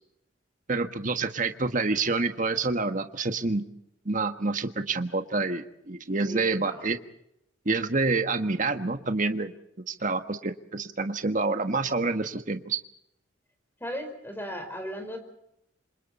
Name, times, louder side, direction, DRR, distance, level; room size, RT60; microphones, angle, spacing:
voice 1, 0.7-3.6 4.0-7.0 7.6-9.5 9.9-12.8, right 3 dB, 45° right, 8 dB, 1.5 m, -27 dB
voice 2, 6.2-6.9 13.8-15.2, equal, 10° left, 6 dB, 4.9 m, -36 dB
27.5 x 27.0 x 4.3 m, 0.78 s
head